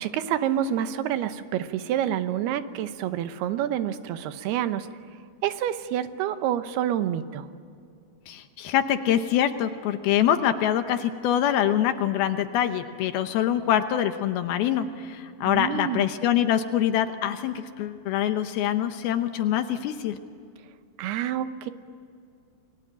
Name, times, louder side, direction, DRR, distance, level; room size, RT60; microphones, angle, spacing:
voice 1, 0.0-4.9 5.4-7.5 15.4-16.1 21.0-21.7, right 10 dB, 85° right, 10 dB, 3.0 m, -28 dB
voice 2, 8.3-20.2, left 10 dB, 80° left, 8 dB, 2.8 m, -25 dB
29.5 x 22.0 x 9.0 m, 2.4 s
omnidirectional pair, 4.5 m